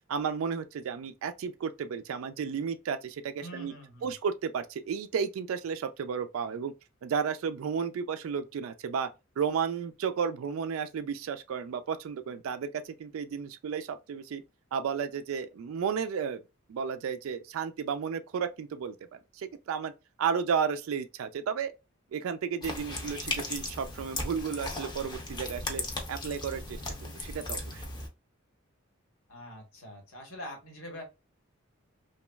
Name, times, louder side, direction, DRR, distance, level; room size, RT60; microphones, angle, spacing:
voice 1, 0.1-3.7 4.0-6.7 7.0-9.1 9.4-14.4 14.7-16.4 16.7-19.0 19.3-19.9 20.2-21.7 22.1-25.8 26.1-27.9, right 6 dB, 80° right, 0.3 m, -33 dB
voice 2, 3.4-4.1 29.3-31.0, equal, 85° left, 1.2 m, -44 dB
sound 1, 22.6-28.1, left 2 dB, 20° left, 0.6 m, -37 dB
3.0 x 2.3 x 2.2 m
head